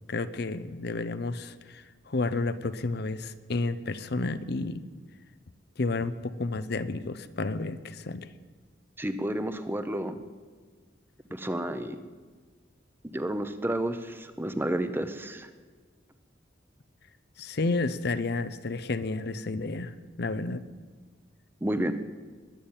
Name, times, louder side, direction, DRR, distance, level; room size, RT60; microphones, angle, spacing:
voice 1, 0.1-4.8 5.8-8.3 17.4-20.6, left 3 dB, 60° left, 12 dB, 0.7 m, -31 dB
voice 2, 9.0-10.2 11.3-12.0 13.0-15.5 21.6-21.9, right 1 dB, 10° right, 10 dB, 0.8 m, -31 dB
21.5 x 7.2 x 8.9 m, 1.5 s
head